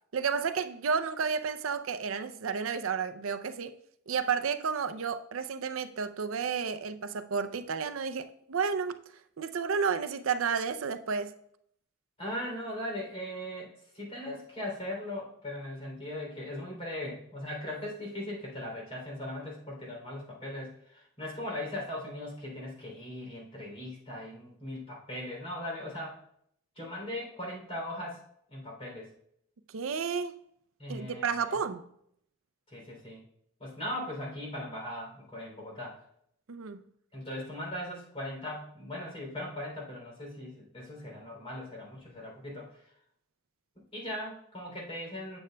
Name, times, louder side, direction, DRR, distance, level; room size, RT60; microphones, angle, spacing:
voice 1, 0.1-3.7 4.1-9.0 9.4-11.3 29.7-30.4 30.9-31.8 36.5-36.8, right 6 dB, 80° right, 0.5 m, -31 dB
voice 2, 12.2-26.2 26.8-28.2 28.5-29.1 30.8-31.3 32.7-33.2 33.6-36.0 37.1-42.7 43.9-45.4, left 1 dB, 30° left, 3.1 m, -39 dB
11.5 x 7.8 x 2.3 m
head